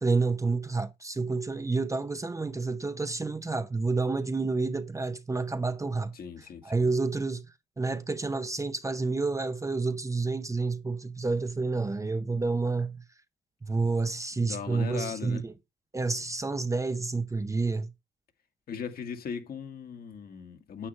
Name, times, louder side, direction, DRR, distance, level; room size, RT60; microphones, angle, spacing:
voice 1, 0.0-6.1 6.6-7.4 7.8-13.0 13.7-15.5 15.9-17.9, right 3 dB, 15° right, 0.7 m, -29 dB
voice 2, 6.1-6.9 14.4-15.4 18.7-20.9, left 6 dB, 55° left, 1.9 m, -38 dB
9.8 x 8.6 x 3.2 m
cardioid pair, 105°, 18 cm